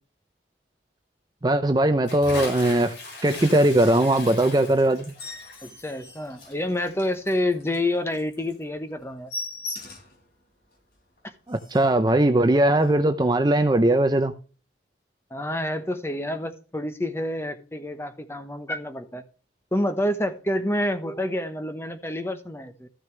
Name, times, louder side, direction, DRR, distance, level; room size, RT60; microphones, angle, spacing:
voice 1, 1.4-2.9 3.2-5.1 11.5-14.3, right 1 dB, 20° right, 0.5 m, -20 dB
Bathtub (filling or washing) / Splash splatter, 2.1-8.6, left 2 dB, 85° left, 4.4 m, -39 dB
sound 1, 5.0-7.2 7.6-7.7 8.1-8.2 8.5-8.6 8.9-10.2 10.7-10.8 11.2-11.3 11.5-12.0 12.7-12.9, left 2 dB, 60° left, 3.8 m, -39 dB
voice 2, 5.6-9.3 15.3-19.2 19.7-22.9, left 1 dB, 15° left, 1.0 m, -28 dB
13.5 x 6.5 x 3.3 m
head